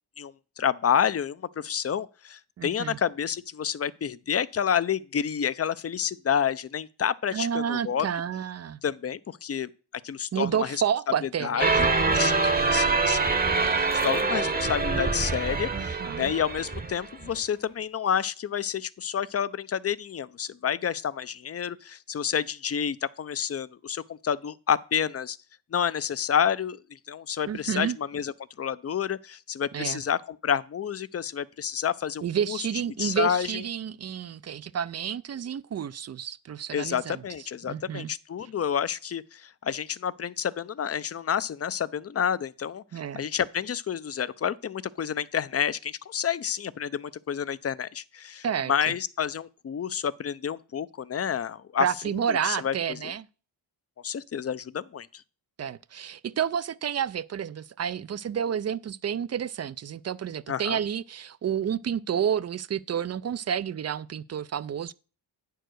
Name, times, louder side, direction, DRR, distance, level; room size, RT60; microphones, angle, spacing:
voice 1, 0.2-8.1 8.8-9.7 10.0-10.8 11.2-11.9 12.1-13.4 13.8-25.4 25.7-28.3 28.6-32.6 33.0-33.5 36.7-42.8 43.2-51.9 52.3-53.1 54.0-55.2 60.5-60.8, left 8 dB, 35° left, 0.5 m, -29 dB
voice 2, 2.6-3.0 7.3-8.8 10.3-12.7 14.3-14.5 15.7-16.3 27.5-28.0 29.7-30.0 32.2-37.2 37.7-38.1 42.9-43.2 48.4-48.9 51.8-53.3 55.6-64.9, right 8 dB, 35° right, 0.4 m, -30 dB
sound 1, 11.6-17.3, right 3 dB, 20° right, 0.9 m, -25 dB
9.0 x 4.7 x 6.3 m
cardioid pair, 70°, 45 cm